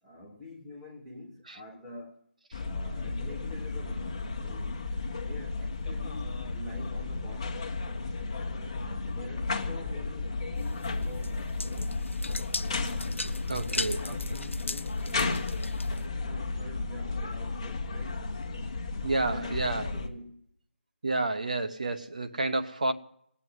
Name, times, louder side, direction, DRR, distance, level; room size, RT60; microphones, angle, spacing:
voice 1, 0.0-2.2 2.5-4.8 5.2-7.7 8.8-12.0 13.6-15.6 16.2-18.3 19.2-20.4, left 1 dB, ahead, 0.9 m, -46 dB
sound 1, 2.5-20.1, left 3 dB, 25° left, 1.2 m, -34 dB
sound 2, 10.6-16.1, left 2 dB, 75° left, 0.9 m, -37 dB
voice 2, 13.5-14.2 19.0-19.9 21.0-22.9, right 2 dB, 35° right, 0.9 m, -30 dB
18.5 x 7.9 x 9.8 m
figure-of-eight pair, 175°, 7 cm